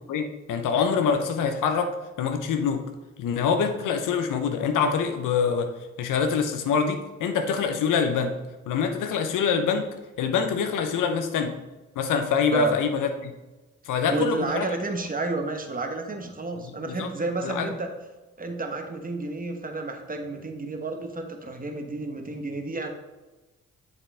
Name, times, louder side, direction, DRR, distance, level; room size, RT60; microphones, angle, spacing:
voice 1, 0.1-2.8 3.2-5.7 6.0-8.3 8.7-9.9 10.2-11.5 12.0-13.3 13.9-14.7 16.8-17.1 17.4-17.7, left 6 dB, 75° left, 6 dB, 0.8 m, -25 dB
voice 2, 14.1-17.9 18.4-22.9, right 2 dB, 25° right, 4 dB, 1.2 m, -31 dB
7.3 x 5.4 x 3.4 m, 1.1 s
hypercardioid pair, 45°, 32 cm